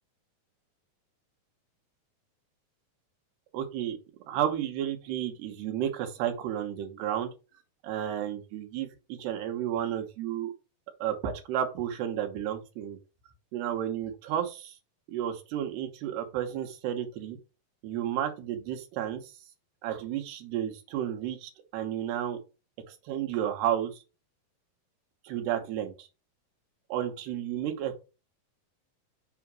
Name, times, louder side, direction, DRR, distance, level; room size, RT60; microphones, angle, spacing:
voice 1, 3.5-4.0 4.3-7.3 7.8-8.9 9.2-10.5 11.0-13.0 13.5-14.7 15.1-17.4 17.8-19.2 19.8-22.4 22.9-24.0 25.2-26.1 26.9-28.0, right 10 dB, 90° right, 5 dB, 3.2 m, -32 dB
6.4 x 4.9 x 6.1 m, 0.31 s
omnidirectional pair, 4.5 m